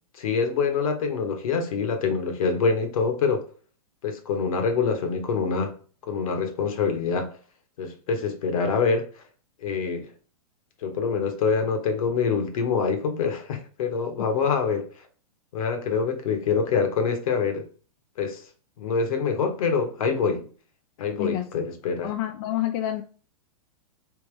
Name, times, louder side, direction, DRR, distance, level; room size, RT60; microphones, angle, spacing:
voice 1, 0.1-3.5 4.0-5.7 6.0-7.4 7.8-9.2 9.6-10.1 10.8-14.9 15.5-17.7 18.2-18.5 18.8-20.5 21.0-22.1, left 5 dB, 65° left, 1.1 m, -25 dB
voice 2, 21.2-21.5 22.0-23.0, left 13 dB, 45° left, 0.4 m, -28 dB
3.5 x 2.9 x 3.2 m
hypercardioid pair, 120°, 19 cm